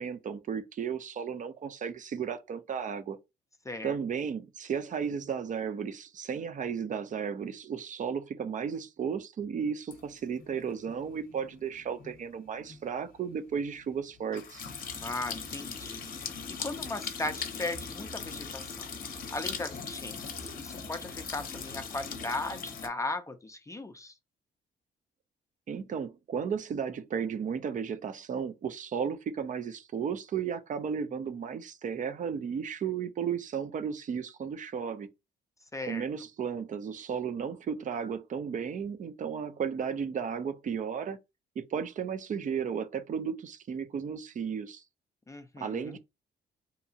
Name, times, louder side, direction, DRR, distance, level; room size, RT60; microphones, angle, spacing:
voice 1, 0.0-3.2 3.8-14.6 25.7-35.1 35.9-41.2 41.6-44.8 45.6-46.0, right 7 dB, 40° right, 0.5 m, -34 dB
voice 2, 3.6-4.0 14.9-18.9 19.3-24.1 35.7-36.0 45.3-46.0, left 2 dB, 15° left, 0.4 m, -37 dB
sound 1, 9.9-22.9, left 5 dB, 45° left, 0.7 m, -40 dB
2.8 x 2.2 x 2.6 m
cardioid pair, 90°, 20 cm